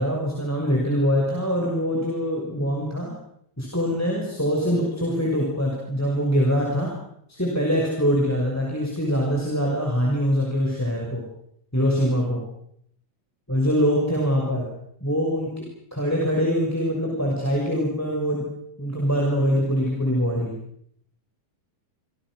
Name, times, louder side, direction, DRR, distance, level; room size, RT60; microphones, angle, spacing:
voice 1, 0.0-3.2 3.6-7.0 7.3-11.3 11.7-12.4 13.5-14.7 15.0-18.5 18.8-20.6, equal, 5° left, -1 dB, 6.0 m, -23 dB
27.5 x 27.0 x 6.4 m, 0.71 s
omnidirectional pair, 4.2 m